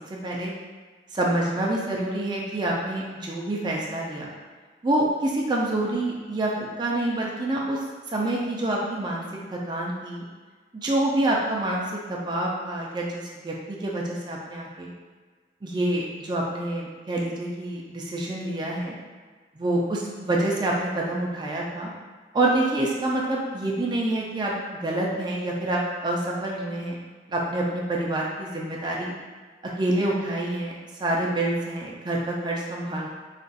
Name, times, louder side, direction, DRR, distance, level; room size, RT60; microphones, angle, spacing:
voice 1, 0.1-0.5 1.1-4.3 4.8-7.8 8.1-9.2 9.5-10.2 10.7-14.9 15.6-18.9 19.6-21.9 22.3-24.5 24.8-27.0 27.3-29.1 29.8-30.7 31.0-33.1, right 1 dB, 25° right, -3 dB, 0.4 m, -27 dB
2.5 x 2.3 x 3.9 m, 1.5 s
head